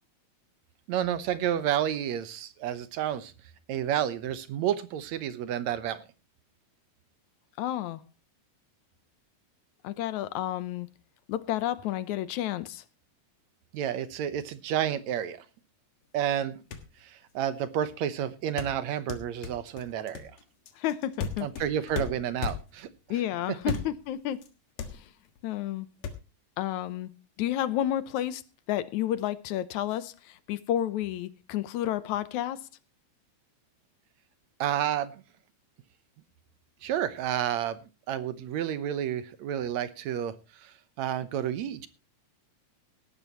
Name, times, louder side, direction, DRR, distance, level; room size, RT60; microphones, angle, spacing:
voice 1, 0.9-3.3 3.7-6.0 13.7-15.4 16.1-16.6 17.0-20.3 21.4-22.9 34.6-35.2 36.8-37.8 38.1-40.3 40.6-40.7 41.0-41.9, right 10 dB, 75° right, 2.2 m, -30 dB
voice 2, 7.6-8.0 9.8-10.9 11.3-12.8 20.8-21.5 23.1-24.4 24.9-25.0 25.4-25.9 26.6-27.1 27.4-28.4 28.7-32.6, left 12 dB, 85° left, 2.2 m, -31 dB
sound 1, 16.4-16.5 16.7-17.0 18.6-22.9 23.6-24.1 24.4-24.5 24.8-25.4 26.0-26.1, left 5 dB, 70° left, 2.8 m, -35 dB
18.0 x 12.5 x 3.0 m
omnidirectional pair, 3.4 m